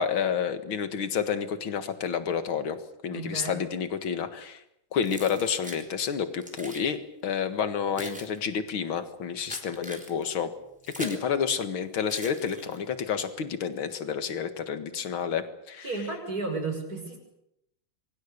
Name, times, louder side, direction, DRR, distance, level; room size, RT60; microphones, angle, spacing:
voice 1, 0.0-2.8 3.0-4.6 4.9-10.5 11.0-15.9, left 7 dB, 85° left, 10 dB, 2.5 m, -29 dB
voice 2, 3.1-3.6 15.8-17.2, right 3 dB, 45° right, 4 dB, 6.5 m, -33 dB
Keys jangling, 5.0-5.9 6.4-6.9 7.6-11.3 12.0-13.0, equal, 5° right, 4.2 m, -42 dB
26.0 x 24.0 x 6.8 m, 0.78 s
omnidirectional pair, 2.2 m